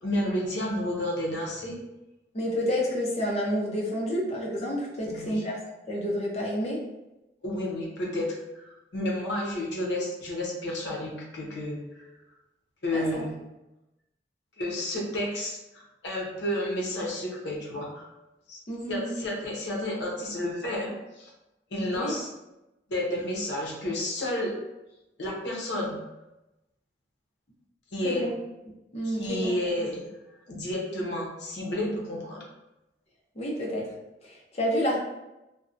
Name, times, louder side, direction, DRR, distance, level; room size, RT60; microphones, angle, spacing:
voice 1, 0.0-1.8 5.1-5.4 7.4-12.1 12.8-13.4 14.6-18.1 18.5-18.6 18.9-21.3 21.7-22.3 22.9-24.5 25.2-26.0 27.9-28.3 29.0-30.1 30.5-32.5, left 1 dB, 75° left, -2 dB, 0.7 m, -31 dB
voice 2, 2.3-5.6 5.9-6.8 12.9-13.2 18.7-19.2 22.0-22.1 28.0-28.3 28.9-29.5 33.4-33.9 34.2-35.0, equal, 35° left, -2 dB, 0.6 m, -29 dB
2.6 x 2.1 x 2.4 m, 0.96 s
head